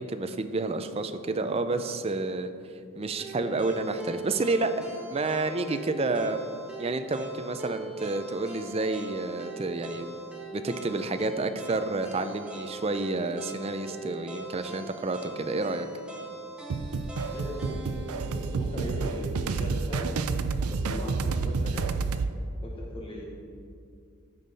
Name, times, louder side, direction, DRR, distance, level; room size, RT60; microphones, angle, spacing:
voice 1, 0.0-2.5 3.0-4.7 5.1-6.4 6.8-10.2 10.5-15.9, right 3 dB, 25° right, 9 dB, 0.4 m, -30 dB
sound 1, 3.2-19.3, right 1 dB, 5° right, 1.2 m, -41 dB
sound 2, 16.7-22.3, right 4 dB, 85° right, 0.5 m, -29 dB
voice 2, 17.3-20.1 20.7-21.8 22.6-23.3, equal, 25° left, -3 dB, 1.0 m, -38 dB
14.5 x 5.5 x 4.1 m, 2.4 s
head